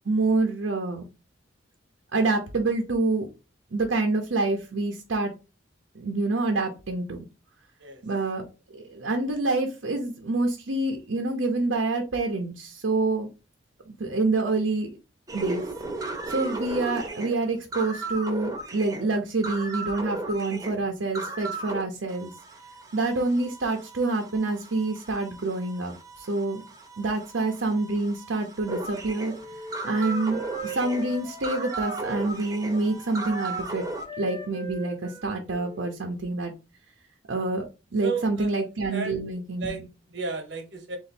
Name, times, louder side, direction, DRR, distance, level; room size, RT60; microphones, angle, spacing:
voice 1, 0.1-1.1 2.1-3.3 3.7-5.3 5.9-7.2 8.0-13.3 13.9-15.0 15.3-15.6 16.3-22.3 22.9-26.6 27.0-29.3 29.8-33.9 34.2-36.5 37.3-37.6 37.9-39.8, right 3 dB, 90° right, 0.7 m, -27 dB
Vintage sci-fi ray with monsters, 15.3-21.8 22.1-34.1, right 2 dB, 20° right, 0.7 m, -36 dB
Wind instrument woodwind instrument, 28.9-36.3, right 3 dB, 30° left, 1.0 m, -40 dB
voice 2, 38.0-38.5 38.9-39.3 39.6-41.0, right 4 dB, 65° right, 1.1 m, -33 dB
3.9 x 2.6 x 4.1 m
head